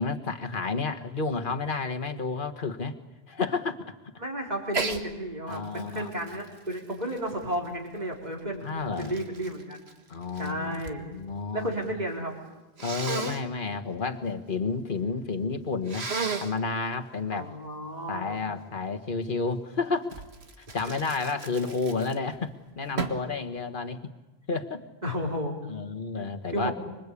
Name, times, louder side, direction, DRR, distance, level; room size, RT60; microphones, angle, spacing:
voice 1, 0.0-3.0 3.3-3.9 5.5-6.4 8.6-9.1 10.1-10.8 11.1-11.7 12.8-16.1 16.4-17.5 18.1-20.1 20.6-24.1 24.5-24.9 25.7-26.7, left 4 dB, 55° left, 6 dB, 1.7 m, -31 dB
voice 2, 4.2-8.7 9.0-9.8 10.4-11.1 11.5-12.3 17.3-18.4 25.0-25.6 26.5-26.7, right 1 dB, 40° right, 0 dB, 4.7 m, -32 dB
Sneeze, 4.7-5.0 5.5-7.8 8.5-11.0 11.3-11.9 12.8-13.4 15.8-16.6 20.1-22.4 23.0-23.3, right 4 dB, 90° right, 2.1 m, -35 dB
25.5 x 24.5 x 8.5 m, 1.1 s
omnidirectional pair, 1.0 m